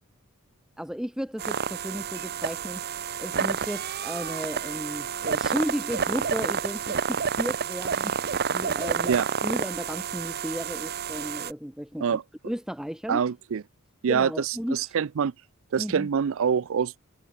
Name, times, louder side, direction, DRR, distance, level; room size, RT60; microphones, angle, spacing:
voice 1, 0.8-2.8 3.2-12.2 12.4-13.2 14.1-14.8 15.8-16.1, equal, 5° right, 0.8 m, -34 dB
sound 1, 1.4-11.5, right 6 dB, 50° right, 0.8 m, -29 dB
voice 2, 13.1-13.6 14.0-15.3 15.7-17.0, right 7 dB, 65° right, 0.4 m, -25 dB
head